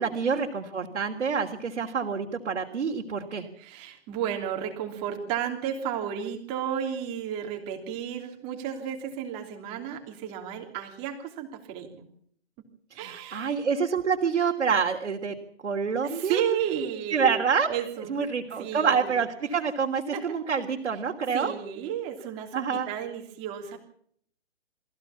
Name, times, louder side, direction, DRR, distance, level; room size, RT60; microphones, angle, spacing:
voice 1, 0.0-3.5 12.9-15.4 15.6-16.4 17.1-17.7 18.1-21.5 22.5-22.9, right 6 dB, 75° right, 1 dB, 3.4 m, -27 dB
voice 2, 3.6-12.1 13.0-13.6 16.0-17.3 17.7-18.2 18.6-19.1 20.1-20.4 21.3-23.8, right 9 dB, 15° right, 4 dB, 3.1 m, -33 dB
24.5 x 16.0 x 7.2 m, 0.63 s
hypercardioid pair, 170°, 35 cm